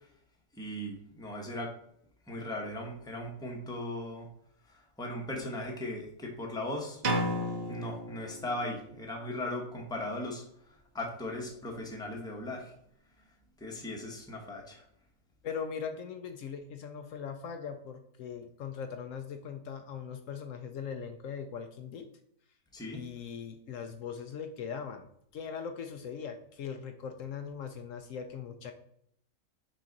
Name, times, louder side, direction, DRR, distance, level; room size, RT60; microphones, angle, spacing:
voice 1, 0.6-1.7 2.3-4.3 5.0-7.0 7.7-10.4 10.9-12.7 13.6-14.8 22.7-23.0, left 1 dB, 5° left, 0 dB, 0.9 m, -38 dB
sound 1, 7.0-8.9, equal, 50° right, 1.0 m, -33 dB
voice 2, 15.4-22.1 22.9-25.1 25.3-28.7, left 7 dB, 70° left, 6 dB, 0.9 m, -40 dB
6.3 x 4.1 x 3.9 m, 0.71 s
omnidirectional pair, 1.5 m